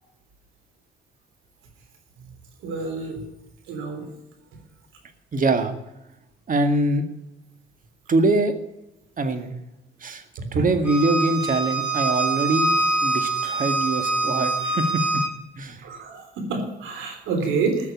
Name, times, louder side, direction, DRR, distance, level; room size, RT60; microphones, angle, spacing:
voice 1, 2.6-3.2 3.7-4.1 10.4-10.7 15.8-17.9, right 4 dB, 90° right, 4 dB, 3.6 m, -28 dB
voice 2, 5.3-5.7 6.5-7.1 8.1-8.5 9.2-9.5 10.0-10.2 10.5-12.7 13.0-15.2 15.6-15.9, right 2 dB, 45° right, 8 dB, 1.9 m, -23 dB
Bowed string instrument, 10.9-15.3, right 3 dB, 5° right, 3.3 m, -24 dB
14.5 x 6.5 x 9.6 m, 0.91 s
cardioid pair, 90°, 20 cm